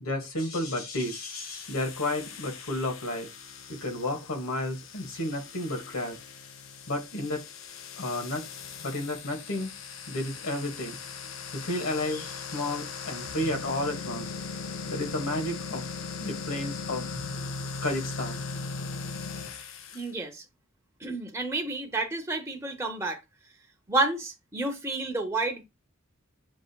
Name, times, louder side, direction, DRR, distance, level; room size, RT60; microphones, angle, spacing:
voice 1, 0.0-3.3 3.7-6.2 6.9-7.4 8.0-8.5 8.8-9.7 10.1-11.0 11.5-14.3 14.9-15.9 16.2-17.1 17.8-18.5, left 1 dB, 90° left, 1.3 m, -32 dB
sound 1, 1.0-20.1, left 4 dB, 70° left, 0.5 m, -39 dB
voice 2, 19.9-20.4 21.0-23.2 23.9-25.6, right 2 dB, 15° right, 0.7 m, -30 dB
7.0 x 2.7 x 2.2 m
head